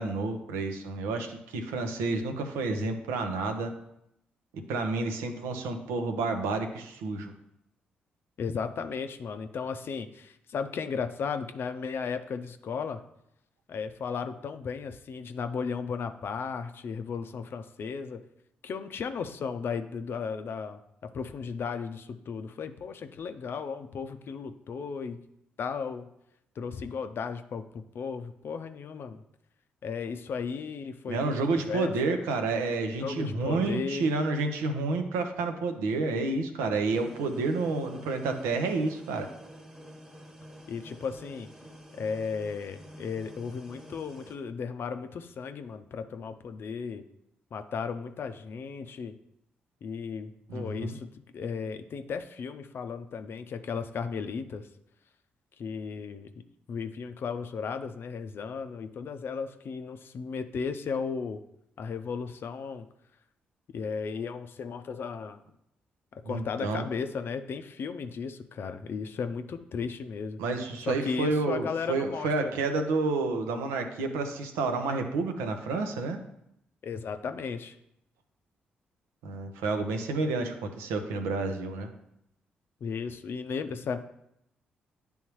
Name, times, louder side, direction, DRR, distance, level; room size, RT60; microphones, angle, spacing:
voice 1, 0.0-3.7 4.5-7.3 31.1-39.3 50.5-51.0 66.2-66.8 70.4-76.2 79.2-81.9, right 3 dB, 75° right, 5 dB, 0.7 m, -30 dB
voice 2, 8.4-13.0 13.7-18.2 18.6-25.2 25.6-26.1 26.6-29.2 29.8-32.2 33.0-34.1 40.7-41.5 41.9-47.0 47.5-49.1 49.8-51.1 51.3-54.7 55.6-56.3 56.7-61.4 61.8-62.9 63.7-65.4 66.1-70.4 70.8-72.6 76.8-77.8 82.8-84.0, left 5 dB, 55° left, 9 dB, 0.5 m, -35 dB
sound 1, 36.9-44.4, equal, 15° right, 1.4 m, -49 dB
10.5 x 3.5 x 3.1 m, 0.78 s
hypercardioid pair, 40°, 4 cm